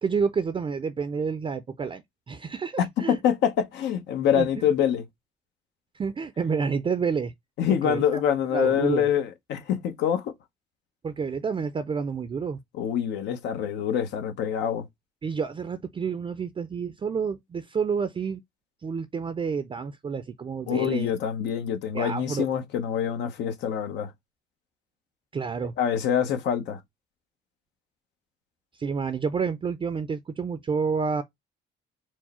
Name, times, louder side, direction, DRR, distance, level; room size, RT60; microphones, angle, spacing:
voice 1, 0.0-3.2 4.4-4.6 5.9-7.3 7.8-8.2 8.5-9.1 11.0-12.6 15.2-18.4 18.8-21.1 21.9-22.5 25.3-25.7 28.8-31.2, right 5 dB, 30° right, 0.5 m, -29 dB
voice 2, 3.1-5.0 7.6-10.3 12.8-14.9 20.7-24.1 25.8-26.8, left 9 dB, 85° left, 0.9 m, -25 dB
4.5 x 2.1 x 4.2 m
cardioid pair, 85°, 18 cm